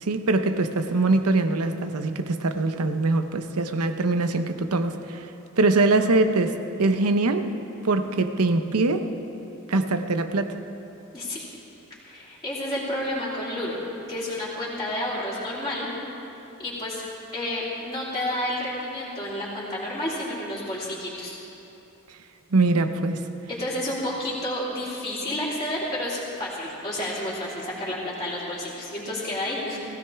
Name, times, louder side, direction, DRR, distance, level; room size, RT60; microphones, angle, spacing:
voice 1, 0.0-5.3 5.6-7.5 7.8-9.1 9.7-10.5 22.5-23.2, right 2 dB, 75° right, 8 dB, 0.8 m, -23 dB
voice 2, 11.1-11.4 12.0-13.8 14.1-15.9 16.6-17.0 17.3-21.4 23.5-29.8, left 1 dB, 20° left, -10 dB, 3.2 m, -30 dB
19.0 x 16.0 x 3.5 m, 3.0 s
head